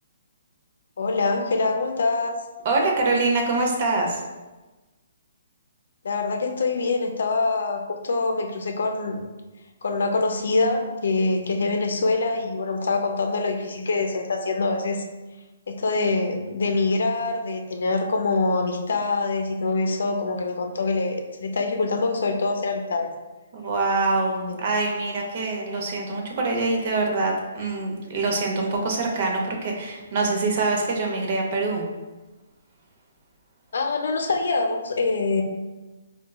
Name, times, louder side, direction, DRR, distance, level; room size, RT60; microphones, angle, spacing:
voice 1, 1.0-2.4 6.0-9.2 9.8-15.0 15.7-23.1 24.5-24.6 33.7-35.4, left 3 dB, 75° left, 4 dB, 0.4 m, -24 dB
voice 2, 2.6-4.2 23.5-31.9, right 3 dB, 45° right, 0 dB, 0.7 m, -24 dB
4.5 x 2.2 x 2.3 m, 1.2 s
hypercardioid pair, 150°, 0 cm